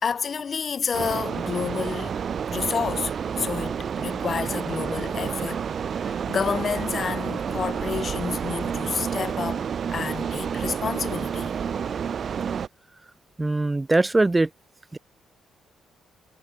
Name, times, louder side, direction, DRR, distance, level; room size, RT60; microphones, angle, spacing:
voice 1, 0.0-2.2 2.5-5.7 6.0-11.6, left 6 dB, 45° left, 3.6 m, -30 dB
sound 1, 0.9-12.7, right 7 dB, 50° right, 0.8 m, -29 dB
voice 2, 13.4-14.5 14.9-15.0, right 2 dB, 15° right, 2.7 m, -21 dB
cardioid pair, 90°, 0 cm